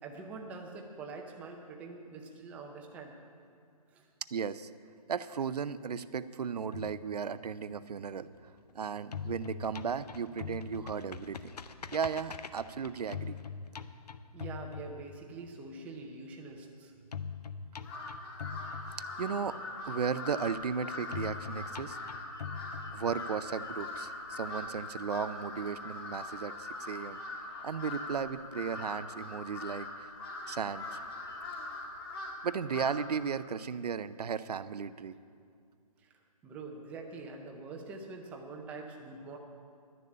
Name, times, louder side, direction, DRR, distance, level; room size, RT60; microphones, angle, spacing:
voice 1, 0.0-3.2 3.9-4.1 14.3-16.9 36.0-39.4, right 3 dB, 5° right, 2 dB, 0.6 m, -45 dB
voice 2, 4.3-4.7 5.1-8.3 8.7-11.5 11.9-13.4 19.2-19.6 19.8-22.0 22.9-30.1 30.5-31.0 32.4-35.2, right 6 dB, 85° right, 15 dB, 0.6 m, -35 dB
sound 1, 6.7-8.7 9.0-15.5 17.1-19.5 21.1-23.5, left 6 dB, 90° left, 0.7 m, -42 dB
Crow, 17.8-33.2, left 2 dB, 40° left, 1.6 m, -42 dB
11.5 x 6.9 x 8.6 m, 2.3 s
hypercardioid pair, 160°, 20 cm